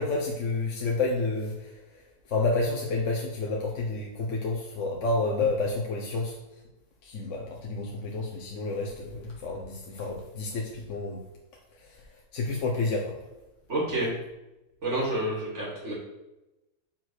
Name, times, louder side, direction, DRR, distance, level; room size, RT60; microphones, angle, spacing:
voice 1, 0.0-1.5 2.3-6.3 7.0-11.2 12.3-13.1, left 3 dB, 55° left, -2 dB, 1.2 m, -29 dB
voice 2, 13.7-14.1 14.8-15.9, right 1 dB, 45° right, -5 dB, 3.0 m, -29 dB
5.8 x 4.6 x 6.2 m, 0.96 s
omnidirectional pair, 1.7 m